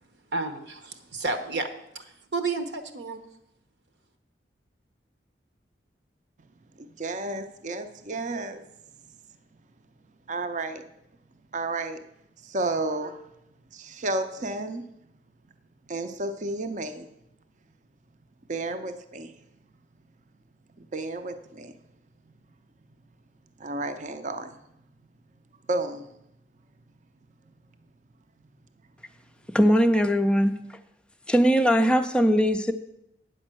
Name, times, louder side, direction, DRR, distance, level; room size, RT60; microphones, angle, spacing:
voice 1, 0.3-1.7 1.9-3.2, right 3 dB, 75° right, 1.0 m, -31 dB
voice 2, 6.8-8.6 10.3-10.8 11.5-12.0 12.5-13.2 13.7-14.8 15.9-17.1 18.5-19.3 20.9-21.7 23.6-24.5 25.7-26.0, right 2 dB, 45° right, 0.6 m, -31 dB
voice 3, 29.5-30.6 31.3-32.7, equal, 5° left, 0.4 m, -20 dB
9.0 x 5.4 x 7.5 m
head